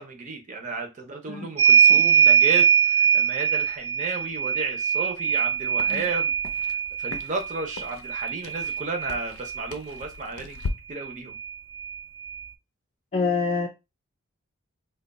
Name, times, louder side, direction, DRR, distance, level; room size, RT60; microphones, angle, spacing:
voice 1, 0.0-6.3 7.0-10.6 10.9-11.4, right 3 dB, 35° right, 0.6 m, -33 dB
sound 1, 1.6-9.7 11.0-11.1 11.3-12.4, right 8 dB, 85° right, 0.6 m, -22 dB
sound 2, 5.2-10.7, left 3 dB, 90° left, 0.5 m, -40 dB
voice 2, 13.1-13.7, left 4 dB, 30° left, 0.4 m, -26 dB
2.9 x 2.2 x 4.0 m
head